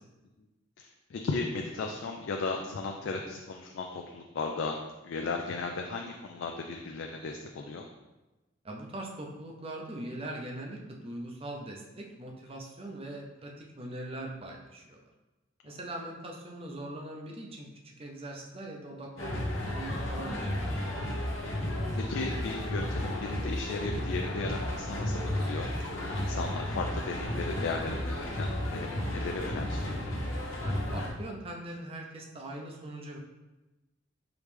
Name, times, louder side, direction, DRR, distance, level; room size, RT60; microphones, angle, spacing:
voice 1, 0.8-4.8 5.0-7.9 15.7-15.8 21.9-25.7 26.1-30.0, left 3 dB, 60° left, 2 dB, 0.3 m, -36 dB
voice 2, 8.6-15.0 15.6-21.1 30.6-33.2, right 1 dB, 30° right, 1 dB, 0.5 m, -41 dB
sound 1, 19.2-31.1, left 1 dB, 80° left, 0.8 m, -33 dB
4.9 x 3.1 x 3.3 m, 1.1 s
head